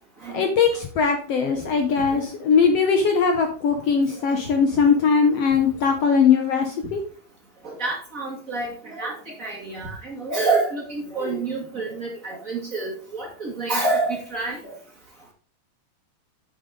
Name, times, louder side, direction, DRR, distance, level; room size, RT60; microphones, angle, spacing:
voice 1, 0.3-7.0, left 5 dB, 65° left, 5 dB, 1.7 m, -20 dB
voice 2, 7.6-14.7, right 3 dB, 30° right, -3 dB, 2.3 m, -28 dB
8.7 x 7.5 x 3.7 m, 0.42 s
omnidirectional pair, 3.4 m